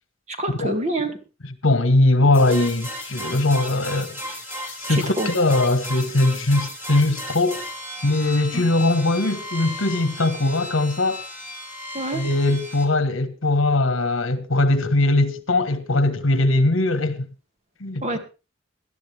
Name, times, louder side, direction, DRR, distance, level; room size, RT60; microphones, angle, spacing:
voice 1, 0.3-1.2 4.9-5.3 8.5-8.7 11.9-12.2 18.0-18.2, right 1 dB, 35° right, 2.2 m, -26 dB
voice 2, 1.6-4.2 4.8-7.6 8.0-11.2 12.1-17.3 17.8-18.2, left 2 dB, 80° left, 1.5 m, -20 dB
sound 1, 2.3-12.8, left 1 dB, 10° right, 4.2 m, -35 dB
19.0 x 12.0 x 3.5 m
head